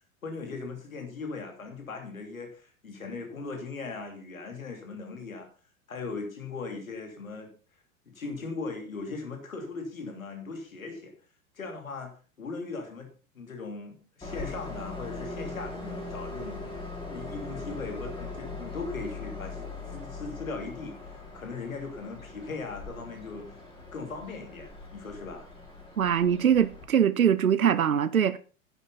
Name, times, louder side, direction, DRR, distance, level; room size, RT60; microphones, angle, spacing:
voice 1, 0.2-5.5 5.9-7.5 8.1-11.1 11.5-12.1 12.4-23.6 23.9-25.5, left 4 dB, 75° left, 3.1 m, -39 dB
Train, 14.2-26.8, left 3 dB, 10° left, 4.8 m, -40 dB
voice 2, 26.0-28.4, right 8 dB, 85° right, 0.6 m, -22 dB
11.0 x 8.2 x 5.7 m
figure-of-eight pair, 90°, 41 cm